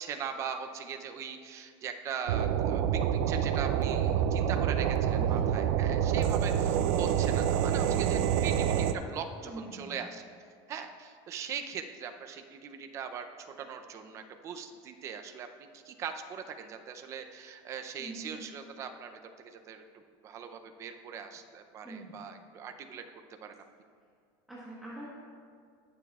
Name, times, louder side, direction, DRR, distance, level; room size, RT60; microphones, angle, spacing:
voice 1, 0.0-10.3 10.7-23.0 23.4-23.6, right 7 dB, 30° right, 6 dB, 0.5 m, -41 dB
sound 1, 2.3-8.9, right 9 dB, 75° right, 0.5 m, -27 dB
voice 2, 5.2-5.5 9.4-10.1 18.0-18.4 21.8-22.4 24.5-25.1, right 1 dB, ahead, -9 dB, 1.1 m, -44 dB
20.0 x 7.0 x 2.4 m, 2.2 s
cardioid pair, 180°, 11 cm